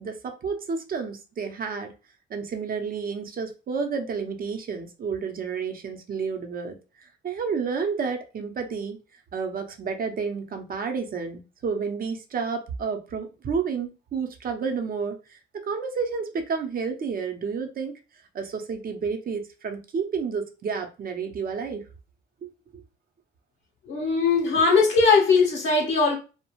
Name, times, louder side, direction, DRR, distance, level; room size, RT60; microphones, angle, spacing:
voice 1, 0.0-1.9 2.3-9.0 9.3-17.9 18.3-21.8 22.4-22.8, right 5 dB, 45° right, 0.7 m, -30 dB
voice 2, 23.9-26.1, left 4 dB, 65° left, 0.8 m, -20 dB
2.4 x 2.1 x 2.9 m
cardioid pair, 90°, 20 cm